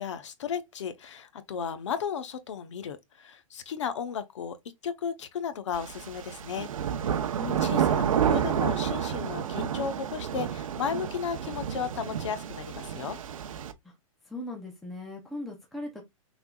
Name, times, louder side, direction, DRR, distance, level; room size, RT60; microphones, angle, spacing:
voice 1, 0.0-4.6 4.8-6.7 7.0-7.1 7.6-13.2, left 7 dB, 55° left, 0.9 m, -34 dB
sound 1, 5.7-13.7, right 9 dB, 70° right, 0.8 m, -30 dB
voice 2, 7.4-8.0 13.8-13.9 14.3-16.0, left 1 dB, ahead, 0.6 m, -38 dB
6.0 x 3.5 x 2.3 m
hypercardioid pair, 175°, 18 cm